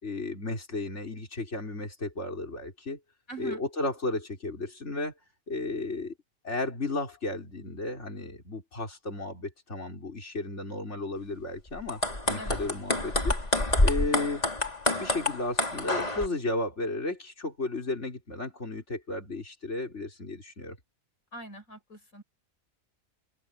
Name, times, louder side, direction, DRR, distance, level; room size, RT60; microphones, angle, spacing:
voice 1, 0.0-3.0 3.4-5.1 5.5-6.1 6.4-12.0 12.3-13.4 13.8-14.4 15.0-20.8, left 2 dB, 55° left, 5.3 m, -34 dB
voice 2, 3.3-3.6 12.4-12.6 21.3-22.2, right 2 dB, 70° left, 5.6 m, -42 dB
sound 1, 11.8-16.3, left 1 dB, 30° left, 3.5 m, -27 dB
open air
omnidirectional pair, 1.5 m